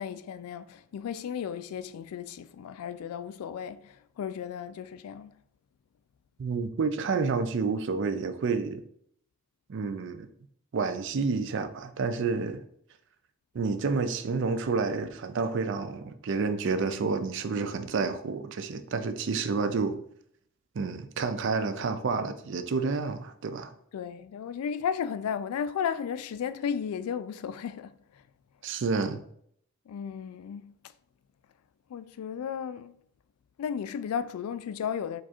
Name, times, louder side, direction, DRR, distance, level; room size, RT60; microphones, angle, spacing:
voice 1, 0.0-5.4 23.9-28.2 29.9-30.7 31.9-33.0 33.6-35.2, left 7 dB, 80° left, 0.3 m, -34 dB
voice 2, 6.4-8.8 9.7-10.3 10.7-12.6 13.5-20.0 20.8-23.7 28.6-29.2, right 4 dB, 55° right, 0.4 m, -29 dB
4.7 x 2.4 x 4.3 m
head